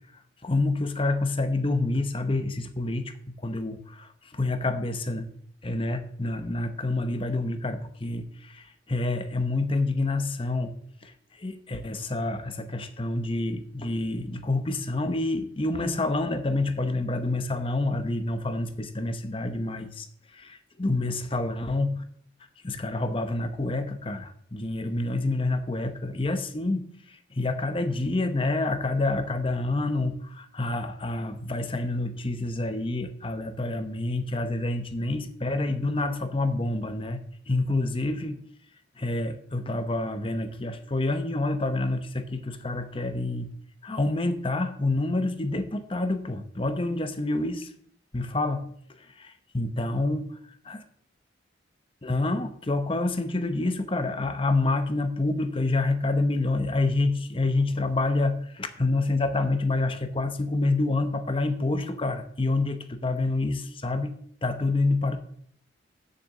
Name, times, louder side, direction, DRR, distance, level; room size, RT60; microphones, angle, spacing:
voice 1, 0.4-5.3 5.6-10.7 11.0-11.1 11.4-20.1 20.3-22.0 22.6-26.9 27.3-37.2 37.5-38.4 39.0-43.5 43.8-47.7 48.1-48.7 49.0-50.3 50.7-50.8 52.0-65.2, left 2 dB, 30° left, 9 dB, 0.8 m, -28 dB
6.8 x 6.6 x 7.3 m, 0.63 s
head